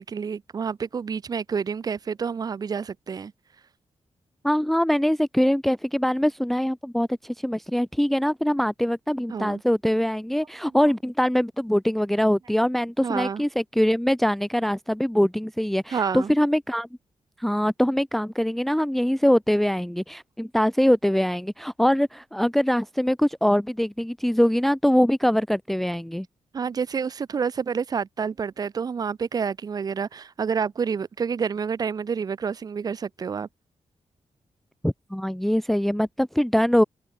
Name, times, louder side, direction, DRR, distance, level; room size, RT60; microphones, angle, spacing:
voice 1, 0.0-3.3 9.3-9.6 13.0-13.4 15.9-16.3 26.5-33.5, right 6 dB, 35° right, 0.5 m, -28 dB
voice 2, 4.4-16.9 17.4-26.3 34.8-36.8, equal, ahead, 0.7 m, -23 dB
wide cardioid pair, 140°, 11 cm